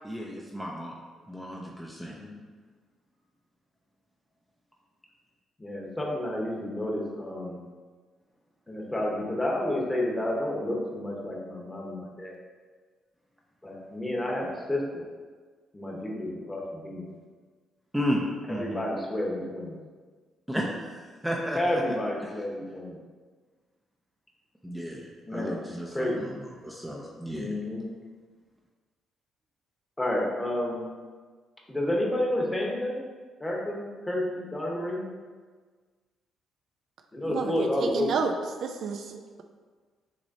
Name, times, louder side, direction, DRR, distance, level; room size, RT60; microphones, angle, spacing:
voice 1, 0.0-0.9 1.3-2.1 17.9-18.8 20.5-21.8 24.6-26.3 26.6-27.5, equal, 5° right, -3 dB, 0.6 m, -33 dB
voice 2, 2.0-2.3 5.6-7.6 8.7-12.3 13.6-15.0 15.7-17.1 18.5-19.8 21.6-23.0 25.2-25.6 25.9-26.2 27.3-27.8 30.0-30.8 31.7-33.0 33.4-35.0 37.1-38.1, left 1 dB, 15° left, -2 dB, 1.2 m, -30 dB
voice 3, 37.3-38.3 38.6-39.4, right 6 dB, 65° right, 5 dB, 0.4 m, -31 dB
6.2 x 3.0 x 2.7 m, 1.5 s
supercardioid pair, 65°, 0 cm